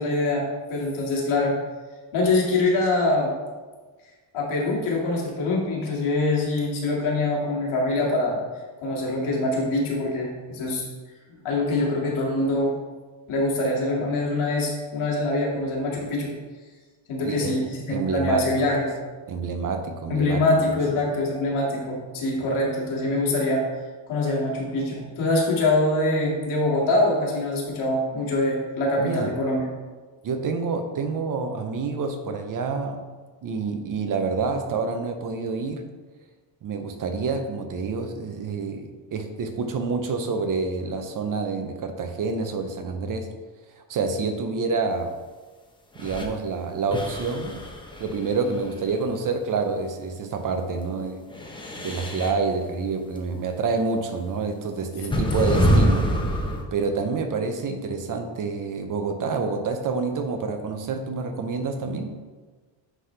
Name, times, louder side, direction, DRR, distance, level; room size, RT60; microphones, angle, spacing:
voice 1, 0.0-1.6 2.1-3.3 4.3-8.4 8.8-10.8 11.4-12.7 13.3-16.3 17.1-18.9 20.1-23.7 24.1-29.6, left 2 dB, 75° left, -3 dB, 2.1 m, -24 dB
voice 2, 17.2-17.6 17.9-18.5 19.3-20.4 29.0-29.3 30.2-33.0 33.4-35.8 36.6-43.3 43.8-45.1 46.0-47.6 48.0-51.2 51.8-62.1, right 4 dB, 40° right, 6 dB, 0.7 m, -28 dB
sound 1, 46.0-46.3 46.9-49.0 51.3-52.4 53.9-54.0 55.1-56.6, equal, 10° left, 0.7 m, -25 dB
9.8 x 4.0 x 3.3 m, 1.4 s
cardioid pair, 135°, 48 cm